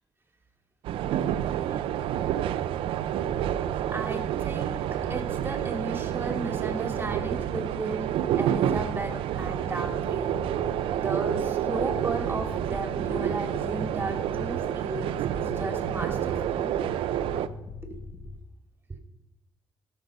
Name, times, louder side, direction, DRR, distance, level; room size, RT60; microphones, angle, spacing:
sound 1, 0.8-17.5, right 10 dB, 80° right, 0.5 m, -29 dB
sound 2, 3.1-3.6 5.0-5.5 6.8-7.3 8.7-18.4, left 4 dB, 55° left, 1.4 m, -42 dB
voice 1, 3.9-4.7 5.1-8.1 8.4-10.3 10.9-16.7 17.9-18.0 18.9-19.0, right 2 dB, 25° right, 4 dB, 2.4 m, -35 dB
14.5 x 6.7 x 5.3 m, 0.92 s
supercardioid pair, 75°, 9 cm